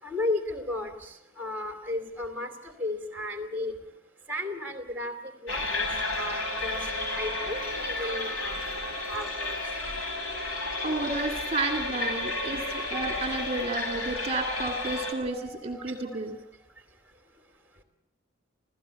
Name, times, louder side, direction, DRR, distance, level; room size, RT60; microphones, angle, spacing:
voice 1, 0.0-1.1 1.4-2.5 2.8-3.7 4.3-5.9 6.1-6.8 7.1-8.6 9.1-9.5 15.3-15.8, left 2 dB, 10° right, 7 dB, 2.9 m, -34 dB
sound 1, 5.5-15.1, left 2 dB, 85° left, 4.6 m, -32 dB
voice 2, 10.5-16.4, right 2 dB, 30° right, 3 dB, 2.5 m, -32 dB
27.0 x 16.0 x 8.4 m, 0.82 s
head